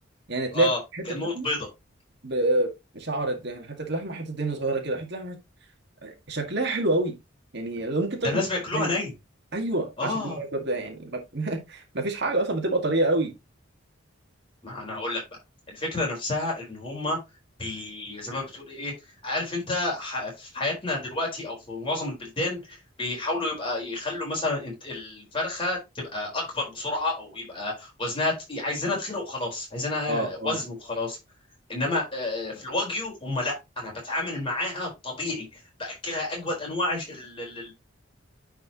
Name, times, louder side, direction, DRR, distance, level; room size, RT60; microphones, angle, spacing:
voice 1, 0.3-1.5 2.2-5.4 6.0-7.1 7.5-8.3 8.7-8.9 9.5-13.3 30.1-30.6, right 2 dB, 55° right, 1.9 m, -27 dB
voice 2, 1.1-1.7 8.2-9.1 10.0-10.4 14.6-15.2 15.7-17.2 17.6-18.9 19.2-31.2 31.7-37.7, left 2 dB, 25° left, 4.5 m, -30 dB
9.9 x 4.7 x 3.0 m
head